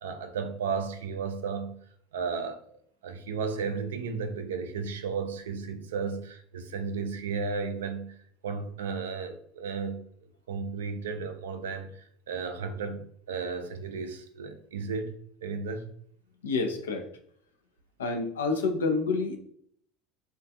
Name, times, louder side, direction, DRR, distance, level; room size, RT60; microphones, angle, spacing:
voice 1, 0.0-1.8 2.1-2.8 3.0-8.2 8.4-10.0 10.5-15.9, right 5 dB, 80° right, 7 dB, 0.3 m, -34 dB
voice 2, 16.4-17.1 18.0-19.4, left 4 dB, 85° left, 6 dB, 0.4 m, -28 dB
2.3 x 2.2 x 2.7 m, 0.64 s
hypercardioid pair, 80°, 0 cm